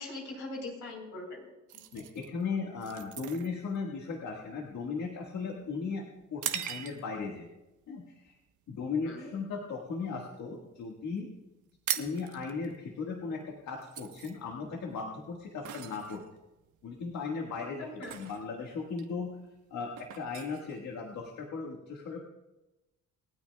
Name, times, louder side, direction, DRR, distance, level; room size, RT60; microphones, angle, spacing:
voice 1, 0.0-1.4 9.0-9.3 17.8-18.1, left 2 dB, 85° left, 1 dB, 3.9 m, -41 dB
voice 2, 1.7-7.5 7.9-8.4 8.7-11.3 12.0-16.2 16.8-19.3 19.7-22.2, left 4 dB, 65° left, 0 dB, 1.7 m, -37 dB
sound 1, 1.7-7.3 7.8-8.1 8.6-8.9 9.2-10.4 10.7-10.8 11.0-11.2 11.4-21.4, right 10 dB, 75° right, 1.1 m, -41 dB
27.5 x 9.4 x 2.3 m, 1.0 s
cardioid pair, 90°, 30 cm